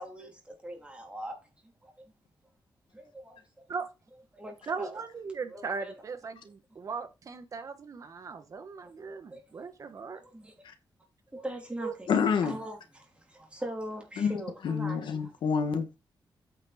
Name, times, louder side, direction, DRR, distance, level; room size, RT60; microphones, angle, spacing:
voice 1, 0.0-1.3 1.8-1.9 2.9-3.4 4.3-5.0 5.5-5.9 8.8-8.9 9.3-9.6 10.2-10.5 11.3-12.1 12.4-15.3, right 1 dB, 15° right, 3.1 m, -41 dB
voice 2, 4.7-10.2 11.7-11.9, right 5 dB, 45° right, 1.4 m, -38 dB
voice 3, 12.1-12.5 14.2-14.4 14.6-16.0, left 6 dB, 80° left, 1.6 m, -27 dB
8.7 x 6.1 x 4.2 m
wide cardioid pair, 160°, 8 cm